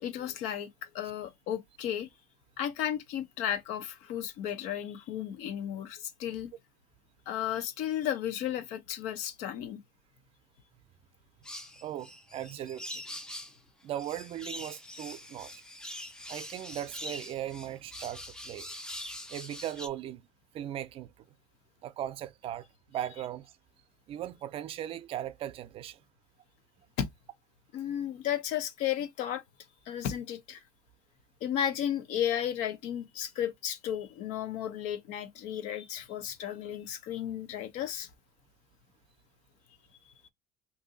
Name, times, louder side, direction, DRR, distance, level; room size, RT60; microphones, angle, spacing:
voice 1, 0.0-2.1 2.6-6.5 7.3-9.8 27.0-27.1 27.7-29.4 29.9-30.6 31.4-38.1, left 10 dB, 75° left, 0.7 m, -34 dB
sound 1, 11.4-13.6 13.9-19.9, left 1 dB, 5° left, 0.4 m, -43 dB
voice 2, 11.8-13.0 13.8-15.5 16.3-18.7 19.3-20.2 20.5-21.1 21.8-22.7 22.9-23.5 24.1-26.0, right 11 dB, 50° right, 0.5 m, -38 dB
2.7 x 2.6 x 3.8 m
cardioid pair, 120°, 12 cm